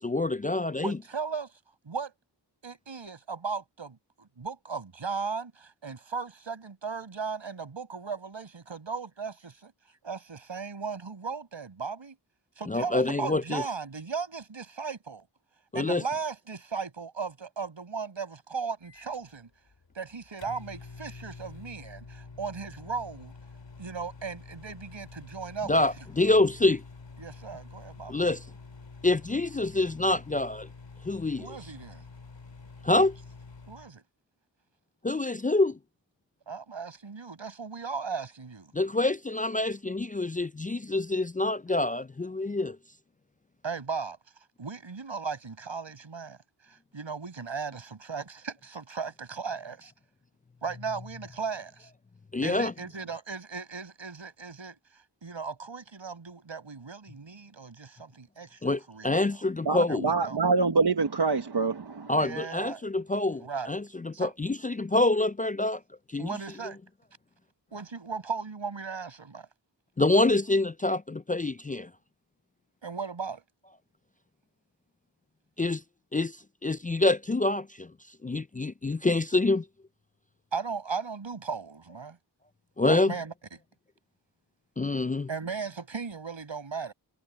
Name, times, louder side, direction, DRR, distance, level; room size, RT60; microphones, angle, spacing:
voice 1, 0.0-1.0 12.7-13.6 15.7-16.0 25.7-26.8 28.1-28.4 29.0-30.7 31.0-31.5 32.8-33.2 35.0-35.8 38.7-42.8 52.3-52.7 58.6-60.1 62.1-65.8 66.1-66.3 70.0-71.9 75.6-75.8 76.1-76.4 76.6-77.9 78.2-79.6 82.8-83.1 84.8-85.3, left 2 dB, 20° left, 0.4 m, -26 dB
voice 2, 0.8-1.5 1.8-2.1 2.6-9.7 10.0-12.2 12.6-15.3 15.7-19.5 19.9-23.3 23.8-25.9 27.2-28.1 31.4-32.1 33.7-34.0 36.5-38.7 43.6-44.2 44.6-46.4 46.6-49.9 50.6-51.9 52.4-59.4 59.9-60.4 62.2-62.8 63.4-63.7 64.1-64.3 66.2-66.8 67.7-69.5 72.8-73.4 80.5-82.2 82.8-83.6 85.3-86.9, right 5 dB, 85° right, 6.2 m, -37 dB
Microwave oven, 18.8-33.9, left 4 dB, 75° left, 3.7 m, -48 dB
voice 3, 59.6-62.2, right 4 dB, 60° right, 1.4 m, -25 dB
cardioid pair, 45°, 44 cm